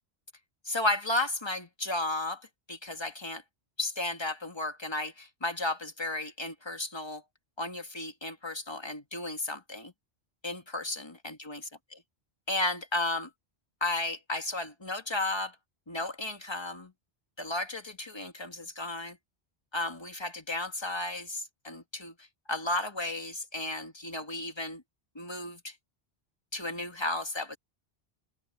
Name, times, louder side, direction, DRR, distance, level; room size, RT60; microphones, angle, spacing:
voice 1, 0.6-3.4 3.8-7.2 7.6-9.9 10.4-11.6 11.9-12.0 12.5-13.3 13.8-15.5 15.9-16.9 17.4-19.2 19.7-24.8 25.1-25.7 26.5-27.6, left 2 dB, 25° left, 1.6 m, -34 dB
omnidirectional pair, 1.1 m